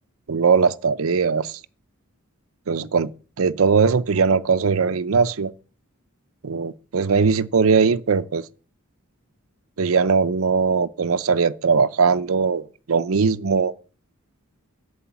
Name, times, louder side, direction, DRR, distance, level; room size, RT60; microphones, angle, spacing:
voice 1, 0.3-1.6 2.7-3.1 3.4-5.5 6.4-8.4 9.8-13.7, right 5 dB, 75° right, 0.6 m, -20 dB
11.5 x 7.9 x 6.9 m
head